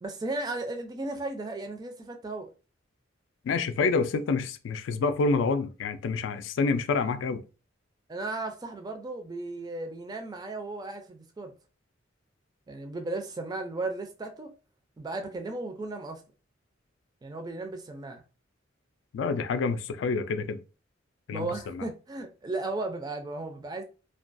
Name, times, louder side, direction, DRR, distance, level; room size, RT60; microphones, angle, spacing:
voice 1, 0.0-2.5 8.1-11.5 12.7-14.5 15.0-16.2 17.2-18.2 21.3-23.8, right 2 dB, 20° right, 0.3 m, -35 dB
voice 2, 3.5-7.4 19.1-20.6 21.3-21.8, left 4 dB, 70° left, 0.3 m, -28 dB
2.3 x 2.2 x 2.5 m
head